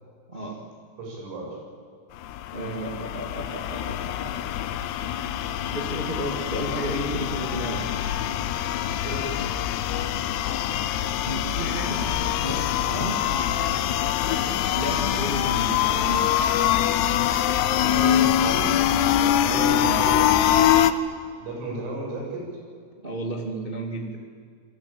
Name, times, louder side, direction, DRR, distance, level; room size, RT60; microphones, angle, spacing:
voice 1, 0.3-0.6 2.5-4.3 5.7-7.8 11.2-13.2 14.7-16.3 19.1-20.0 23.0-24.1, right 2 dB, 45° right, 1 dB, 0.7 m, -33 dB
voice 2, 1.0-1.6 9.0-9.4 14.3-14.6 17.8-18.7 19.0-19.1 19.5-20.9 21.4-22.5, right 2 dB, 75° right, -1 dB, 10.5 m, -34 dB
sound 1, 2.2-20.9, left 11 dB, 75° left, 2.6 m, -24 dB
29.5 x 20.5 x 8.7 m, 2.1 s
omnidirectional pair, 5.6 m